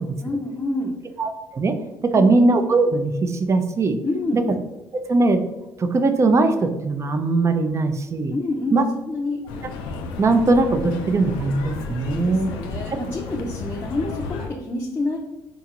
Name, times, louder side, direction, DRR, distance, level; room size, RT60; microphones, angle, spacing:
voice 1, 0.2-1.0 2.1-2.3 4.0-4.4 8.3-9.4 12.1-15.2, left 2 dB, 25° left, -1 dB, 0.5 m, -27 dB
voice 2, 1.2-1.7 2.0-4.0 4.3-4.4 5.1-5.4 5.8-8.3 8.7-8.8 10.2-12.5, right 3 dB, 35° right, 7 dB, 0.4 m, -20 dB
sound 1, 9.5-14.5, left 4 dB, 85° left, 0.4 m, -32 dB
3.8 x 2.3 x 2.8 m, 0.99 s
supercardioid pair, 75°, 9 cm